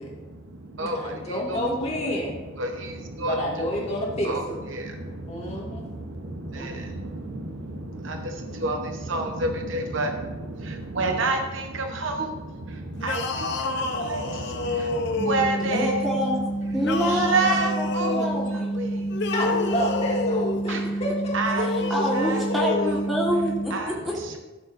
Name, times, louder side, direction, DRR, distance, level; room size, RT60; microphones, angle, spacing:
voice 1, 0.0-16.0 16.6-16.7 17.0-19.3 20.5-21.0 21.3-22.5 22.8-23.0 23.7-24.4, right 2 dB, 75° right, 4 dB, 0.9 m, -30 dB
voice 2, 0.8-2.4 3.2-4.3 5.3-5.8 6.6-6.8 19.3-21.5, equal, 35° left, -3 dB, 2.0 m, -29 dB
sound 1, 13.0-15.7 16.8-18.3 19.1-20.6 21.5-23.0, left 3 dB, 60° left, 0.7 m, -28 dB
sound 2, 15.2-23.7, right 2 dB, 20° right, 2.2 m, -29 dB
voice 3, 15.6-16.4 16.7-19.1 21.7-23.7 24.0-24.1, equal, ahead, -5 dB, 1.6 m, -27 dB
13.5 x 6.8 x 2.6 m, 1.2 s
head